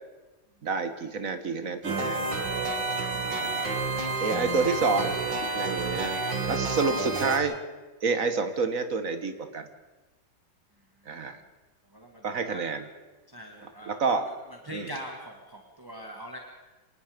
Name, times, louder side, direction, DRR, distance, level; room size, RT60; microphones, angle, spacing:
voice 1, 0.6-2.3 3.3-3.9 4.2-5.2 5.5-7.6 8.0-9.7 11.1-11.4 12.2-12.9 13.6-14.3 14.7-14.9, right 4 dB, 50° right, 9 dB, 1.9 m, -29 dB
sound 1, 1.8-7.4, right 3 dB, 90° right, 3.0 m, -29 dB
voice 2, 11.9-12.6 13.3-14.0 14.6-16.4, equal, 10° right, 1 dB, 2.0 m, -42 dB
26.5 x 19.0 x 5.2 m, 1.2 s
omnidirectional pair, 1.9 m